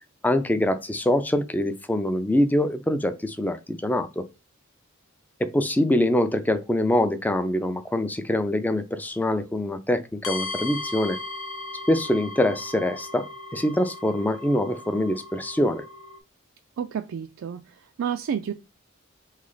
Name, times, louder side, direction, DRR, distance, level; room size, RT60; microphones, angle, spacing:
voice 1, 0.2-4.3 5.4-11.2 11.9-13.3 13.5-15.8, left 1 dB, 10° left, 0.4 m, -24 dB
sound 1, 10.2-16.2, left 2 dB, 85° left, 0.7 m, -37 dB
voice 2, 16.8-18.5, right 8 dB, 70° right, 0.3 m, -30 dB
3.5 x 3.2 x 3.9 m
head